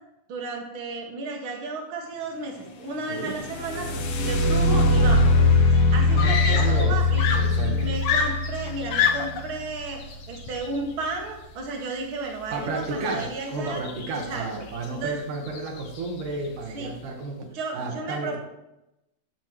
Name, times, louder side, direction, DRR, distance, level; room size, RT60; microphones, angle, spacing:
voice 1, 0.3-3.9 4.2-5.3 5.7-7.3 7.7-10.0 10.3-13.8 14.1-14.6 14.9-15.2 16.7-16.9 17.5-18.4, right 3 dB, 45° right, 1 dB, 2.6 m, -33 dB
sound 1, 3.2-11.0 13.1-13.2 13.7-14.2 14.8-14.9 15.5-15.8, left 2 dB, 55° left, 1.8 m, -22 dB
voice 2, 3.7-4.0 6.1-7.0 7.3-7.9 12.5-17.4 17.7-18.4, right 3 dB, 90° right, 3 dB, 3.1 m, -32 dB
Screaming, 5.3-5.4 6.2-6.9 7.2-9.5 10.5-10.7, left 7 dB, 80° left, 2.5 m, -26 dB
15.0 x 10.0 x 3.2 m, 0.90 s
omnidirectional pair, 3.5 m